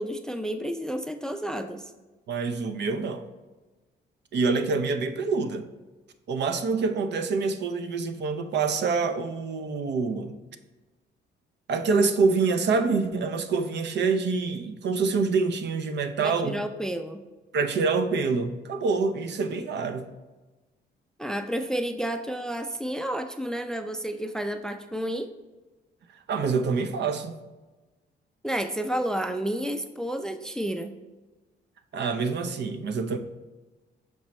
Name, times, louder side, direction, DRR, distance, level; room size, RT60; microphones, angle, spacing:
voice 1, 0.0-1.9 16.2-17.2 21.2-25.3 28.4-31.0, right 1 dB, 5° left, 0.4 m, -31 dB
voice 2, 2.3-3.2 4.3-5.7 6.3-10.3 11.7-16.6 17.5-20.1 26.3-27.3 31.9-33.2, right 4 dB, 60° right, 0.6 m, -26 dB
6.0 x 5.3 x 3.1 m
cardioid pair, 90°, 20 cm